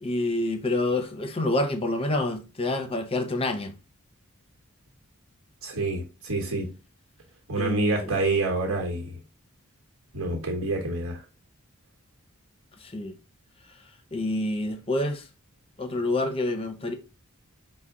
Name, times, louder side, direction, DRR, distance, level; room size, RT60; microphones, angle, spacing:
voice 1, 0.0-3.7 7.6-8.1 12.8-13.1 14.1-15.2 15.8-16.9, left 2 dB, 25° left, 0.6 m, -27 dB
voice 2, 5.6-6.7 7.5-9.2 10.1-11.2, right 2 dB, 65° right, 1.2 m, -27 dB
5.6 x 2.2 x 3.7 m
head